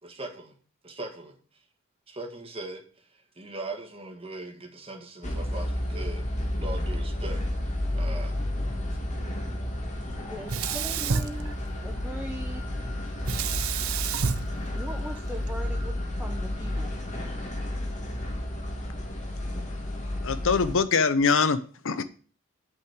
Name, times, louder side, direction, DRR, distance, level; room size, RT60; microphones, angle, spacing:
voice 1, 0.0-0.6 0.8-1.4 2.1-7.4 7.9-8.3, right 2 dB, 25° right, 3 dB, 2.1 m, -40 dB
sound 1, 5.2-20.8, left 1 dB, 35° left, 2.0 m, -31 dB
voice 2, 10.2-12.7 14.7-16.9, right 1 dB, 5° right, 1 dB, 1.1 m, -40 dB
Sink (filling or washing), 10.5-12.1 13.2-15.5, right 6 dB, 70° right, 0.7 m, -30 dB
voice 3, 20.2-21.6 21.8-22.0, left 5 dB, 65° left, 13 dB, 0.8 m, -23 dB
8.4 x 5.8 x 8.0 m, 0.41 s
head